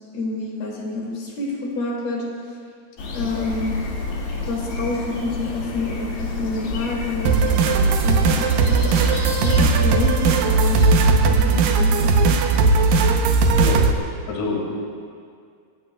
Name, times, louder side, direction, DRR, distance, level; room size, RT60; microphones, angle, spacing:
voice 1, 0.1-2.2 3.1-3.8 4.5-7.5 8.0-9.0 9.4-12.2, left 3 dB, 70° left, -3 dB, 4.4 m, -28 dB
sound 1, 3.0-10.9, left 3 dB, 85° left, 4.4 m, -30 dB
sound 2, 7.3-13.9, right 4 dB, 70° right, 2.3 m, -17 dB
voice 2, 14.3-14.7, left 3 dB, 50° left, -2 dB, 3.1 m, -26 dB
27.0 x 17.0 x 2.3 m, 2.2 s
omnidirectional pair, 4.6 m